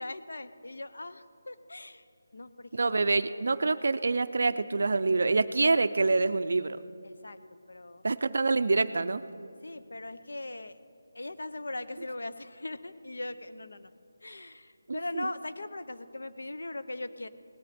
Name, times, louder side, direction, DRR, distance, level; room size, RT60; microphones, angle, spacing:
voice 1, 0.0-2.0 2.3-2.7 7.0-7.4 7.7-8.0 9.6-10.8 11.1-13.9 14.2-17.3, left 2 dB, 70° left, 11 dB, 0.8 m, -40 dB
voice 2, 2.7-6.8 8.0-9.2 14.9-15.3, right 3 dB, 45° right, 13 dB, 0.4 m, -26 dB
18.0 x 11.5 x 4.3 m, 2.4 s
figure-of-eight pair, 180°, 0 cm